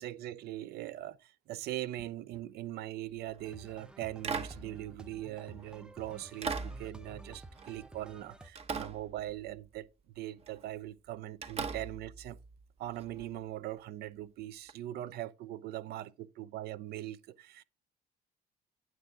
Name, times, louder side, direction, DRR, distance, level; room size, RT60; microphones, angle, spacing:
voice 1, 0.0-9.9 10.2-12.4 12.8-17.6, right 14 dB, 70° right, 0.5 m, -41 dB
Glasses on table, 3.2-3.5 4.2-5.7 6.4-8.2 8.6-9.8 10.4-10.7 11.4-13.3 14.7-14.8, right 5 dB, 40° right, 0.9 m, -41 dB
sound 1, 3.4-8.5, right 1 dB, 5° right, 0.5 m, -53 dB
9.3 x 6.1 x 3.6 m
cardioid pair, 110°, 17 cm